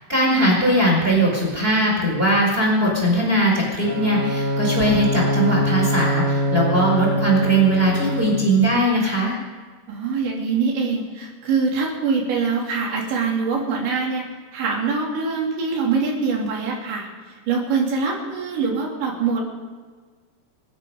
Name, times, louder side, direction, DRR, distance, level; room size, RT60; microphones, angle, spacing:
voice 1, 0.1-9.4, right 1 dB, 15° right, -3 dB, 4.6 m, -19 dB
Bowed string instrument, 3.8-8.6, equal, 50° right, 3.6 m, -23 dB
voice 2, 9.9-19.4, right 5 dB, 90° right, -2 dB, 5.4 m, -24 dB
26.0 x 9.8 x 5.4 m, 1.5 s
omnidirectional pair, 5.0 m